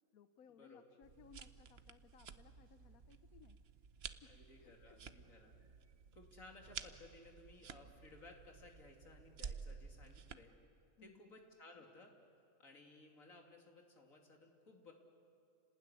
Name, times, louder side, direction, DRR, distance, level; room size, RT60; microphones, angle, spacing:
voice 1, 0.1-3.6 4.2-4.3 4.6-5.0 5.5-5.6 11.0-11.3, left 7 dB, 85° left, 10 dB, 1.3 m, -64 dB
sound 1, 1.0-10.4, right 6 dB, 50° right, 1.0 m, -53 dB
voice 2, 4.3-5.5 6.1-10.5 11.0-12.1 12.6-14.9, left 2 dB, 70° left, 2 dB, 3.3 m, -59 dB
30.0 x 19.0 x 9.8 m, 2.6 s
omnidirectional pair, 1.5 m